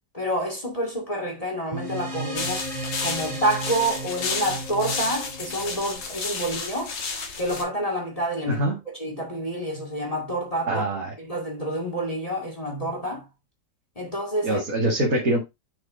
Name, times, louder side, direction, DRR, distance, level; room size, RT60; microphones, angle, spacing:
voice 1, 0.1-2.6 3.0-6.9 7.4-10.8 11.2-13.3 14.0-14.6, right 1 dB, 20° left, 2.1 m, -28 dB
sound 1, 1.7-6.5, right 1 dB, 20° right, 2.8 m, -35 dB
sound 2, 2.3-7.6, left 4 dB, 80° left, 2.2 m, -32 dB
voice 2, 10.7-11.1 14.4-15.4, right 1 dB, 55° right, 2.4 m, -24 dB
7.2 x 4.7 x 3.7 m
omnidirectional pair, 1.9 m